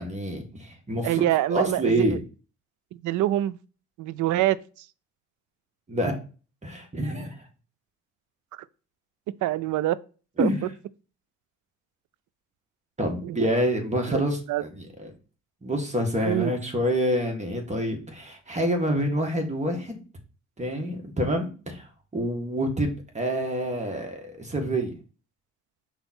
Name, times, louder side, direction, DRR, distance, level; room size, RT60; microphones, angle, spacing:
voice 1, 0.0-1.2 1.5-2.2 5.9-6.1 6.6-7.4 10.4-10.6 13.0-15.1 15.6-20.0 20.6-24.9, equal, 25° right, 1.9 m, -27 dB
voice 2, 1.0-2.0 3.0-3.6 4.0-4.6 9.4-10.0 10.4-10.5 13.2-13.4 14.1-14.2 14.5-14.6 16.2-16.5, right 14 dB, 75° right, 0.5 m, -24 dB
5.6 x 3.9 x 4.3 m
cardioid pair, 90°, 30 cm